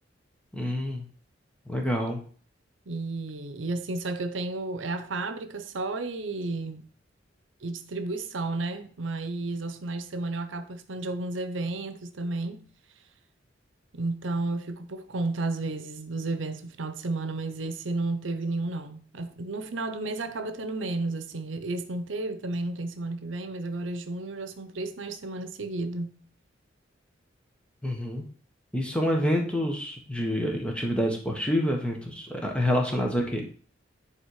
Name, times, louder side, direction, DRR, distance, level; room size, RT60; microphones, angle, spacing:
voice 1, 0.5-1.1 1.7-2.2 27.8-28.2 28.7-33.4, equal, 5° left, 1.4 m, -27 dB
voice 2, 2.9-6.8 7.6-12.7 13.9-26.1, right 2 dB, 85° right, 0.8 m, -32 dB
9.8 x 3.5 x 4.8 m
head